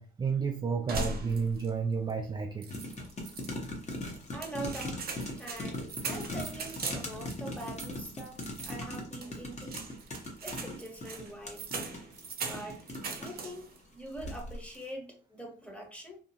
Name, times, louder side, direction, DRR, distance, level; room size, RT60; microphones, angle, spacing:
voice 1, 0.0-2.7, right 5 dB, 25° right, 0.3 m, -31 dB
sound 1, 0.9-1.8 2.1-2.2 2.6-3.5 4.1-13.8 14.1-14.6, right 3 dB, 50° right, 0.7 m, -40 dB
sound 2, 2.7-13.5 14.1-14.5 14.7-14.8, left 1 dB, 35° left, 0.8 m, -40 dB
voice 2, 4.3-5.1 5.4-9.8 10.4-11.6 12.5-12.8 13.2-16.2, right 1 dB, 5° left, 0.9 m, -43 dB
2.7 x 2.2 x 2.7 m
cardioid pair, 90°, 20 cm